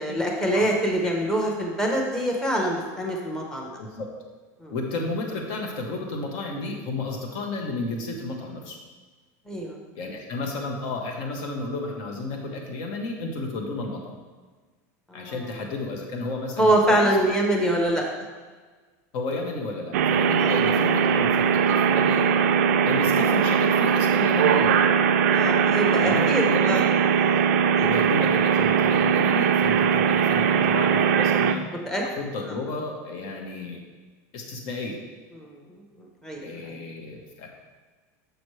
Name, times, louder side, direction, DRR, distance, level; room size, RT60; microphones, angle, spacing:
voice 1, 0.0-3.7 4.6-4.7 9.5-9.8 15.1-15.3 16.6-18.0 20.4-20.5 25.3-26.8 27.3-27.4 27.8-27.9 31.9-32.0 35.4-35.6 36.2-36.8, right 1 dB, 5° left, -1 dB, 1.0 m, -24 dB
voice 2, 3.8-4.1 4.7-8.8 9.9-14.2 15.1-17.2 19.1-22.3 22.8-24.8 25.9-26.8 27.3-27.5 27.8-31.6 32.0-33.8 34.3-35.0 36.4-37.5, left 2 dB, 50° left, 2 dB, 1.2 m, -32 dB
sound 1, 19.9-31.5, right 7 dB, 90° right, 0.4 m, -20 dB
6.5 x 6.1 x 3.3 m, 1.4 s
supercardioid pair, 155°, 8 cm